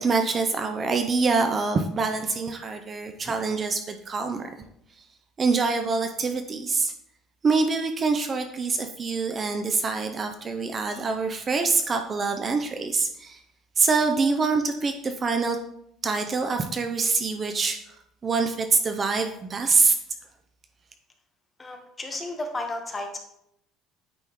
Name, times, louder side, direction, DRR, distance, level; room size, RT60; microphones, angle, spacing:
voice 1, 0.0-4.5 5.4-6.9 7.4-13.4 13.8-15.6 16.0-17.8 18.2-20.0, right 4 dB, 30° right, 6 dB, 0.5 m, -25 dB
voice 2, 21.6-23.2, left 2 dB, 20° left, 3 dB, 1.1 m, -33 dB
8.9 x 3.5 x 3.0 m, 0.76 s
cardioid pair, 120°, 0 cm